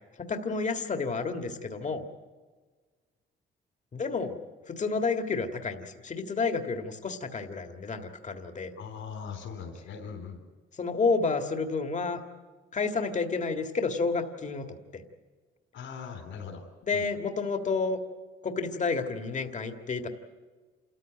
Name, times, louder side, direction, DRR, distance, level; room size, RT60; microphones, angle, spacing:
voice 1, 0.2-2.0 3.9-4.4 4.7-8.7 10.7-12.2 12.7-14.7 14.9-15.0 16.8-18.0 18.4-20.1, left 4 dB, 40° left, 6 dB, 1.9 m, -30 dB
voice 2, 8.7-10.4 15.7-16.6 16.9-17.0, left 6 dB, 75° left, 4 dB, 4.0 m, -40 dB
27.5 x 14.0 x 9.3 m, 1.4 s
cardioid pair, 90°, 20 cm